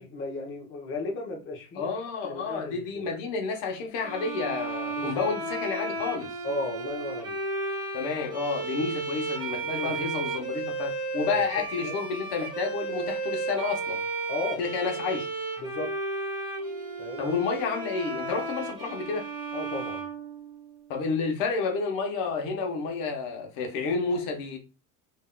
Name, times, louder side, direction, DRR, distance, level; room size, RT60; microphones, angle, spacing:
voice 1, 0.0-1.9 2.2-3.0 5.0-5.3 6.4-7.4 9.8-10.1 11.5-12.0 14.3-14.6 15.6-15.9 17.0-17.2 19.5-20.1, left 2 dB, 25° left, 0.9 m, -35 dB
voice 2, 1.8-6.3 7.9-14.0 14.6-15.3 17.2-19.2 20.9-24.6, left 4 dB, 60° left, 1.1 m, -30 dB
sound 1, 4.0-20.9, right 3 dB, 10° right, 1.3 m, -34 dB
3.4 x 2.8 x 2.2 m
supercardioid pair, 115°, 45 cm